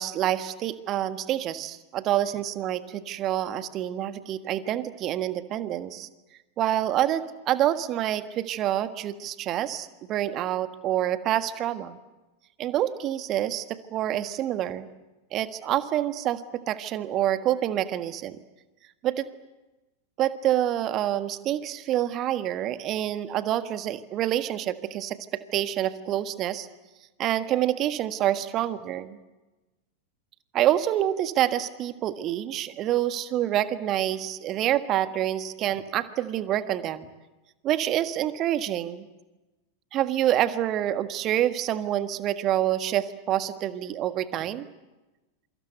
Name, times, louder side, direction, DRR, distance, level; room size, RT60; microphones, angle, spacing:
voice 1, 0.0-6.1 6.6-12.0 12.6-14.9 15.3-18.4 19.0-19.2 20.2-26.7 27.2-29.2 30.5-37.1 37.6-39.1 39.9-44.7, right 12 dB, 35° right, 12 dB, 1.5 m, -27 dB
27.5 x 24.5 x 8.1 m, 1.1 s
figure-of-eight pair, 90°, 0 cm